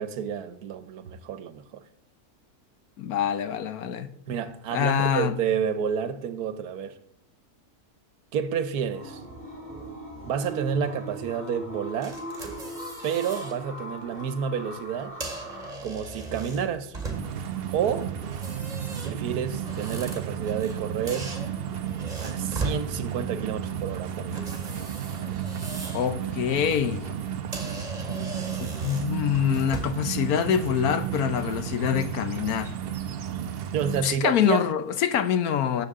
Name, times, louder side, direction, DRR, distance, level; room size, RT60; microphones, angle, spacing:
voice 1, 0.0-1.8 4.3-7.0 8.3-9.2 10.3-12.2 13.0-15.2 15.8-16.9 17.7-18.2 19.0-21.4 22.2-24.4 33.7-34.7, right 7 dB, 85° right, 1.3 m, -29 dB
voice 2, 3.0-4.1 4.7-5.3 25.9-27.1 28.6-32.7 34.0-35.9, left 9 dB, 75° left, 1.2 m, -25 dB
sound 1, 8.8-15.7, right 1 dB, 10° right, 3.2 m, -39 dB
sound 2, 12.0-13.6 14.0-14.2 15.0-17.5 18.2-20.8 21.1-22.8 24.3-26.1 26.5-26.7 27.2-27.3 27.5-30.1, right 3 dB, 25° right, 2.0 m, -38 dB
sound 3, 17.1-34.1, right 8 dB, 55° right, 0.7 m, -33 dB
17.5 x 7.3 x 3.7 m
omnidirectional pair, 1.6 m